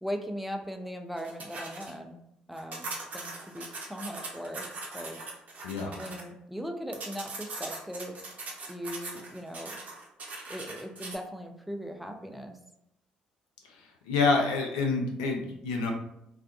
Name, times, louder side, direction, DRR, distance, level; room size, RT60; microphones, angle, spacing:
voice 1, 0.0-2.2 2.5-4.7 4.9-5.2 6.0-8.2 8.7-9.8 10.5-12.6, equal, ahead, 3 dB, 0.4 m, -39 dB
sound 1, 1.2-1.9 2.6-6.2 6.9-11.2, right 3 dB, 45° right, 0.6 m, -40 dB
voice 2, 14.1-15.9, left 3 dB, 80° left, 2 dB, 0.4 m, -27 dB
2.3 x 2.2 x 2.4 m, 0.80 s
hypercardioid pair, 50°, 4 cm